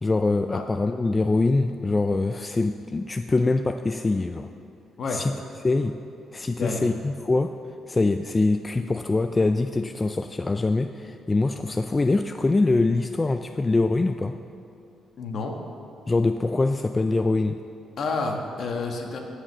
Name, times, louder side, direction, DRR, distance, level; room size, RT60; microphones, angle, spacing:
voice 1, 0.0-4.5 5.1-5.3 5.6-6.0 6.3-7.5 7.9-14.4 16.1-17.6, left 3 dB, 25° left, 8 dB, 0.3 m, -24 dB
voice 2, 6.6-6.9 15.2-15.6 18.0-19.2, left 3 dB, 55° left, 2 dB, 1.3 m, -29 dB
14.5 x 5.0 x 6.2 m, 2.7 s
cardioid pair, 90°, 0 cm